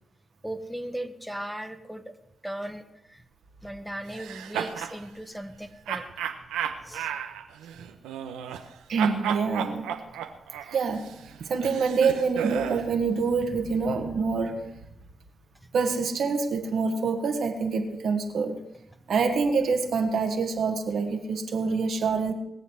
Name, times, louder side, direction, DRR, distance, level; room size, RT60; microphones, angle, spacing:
voice 1, 0.4-2.1 2.4-3.2 3.6-6.0 6.8-7.1, right 1 dB, ahead, 6 dB, 1.6 m, -37 dB
sound 1, 4.1-5.0 5.9-8.7 9.0-12.9, right 9 dB, 90° right, 1.0 m, -33 dB
voice 2, 8.9-9.9 10.7-11.0 11.4-14.6 15.7-18.6 19.1-22.3, right 4 dB, 70° right, 4 dB, 1.7 m, -26 dB
20.5 x 7.3 x 6.4 m, 0.85 s
supercardioid pair, 40°, 0 cm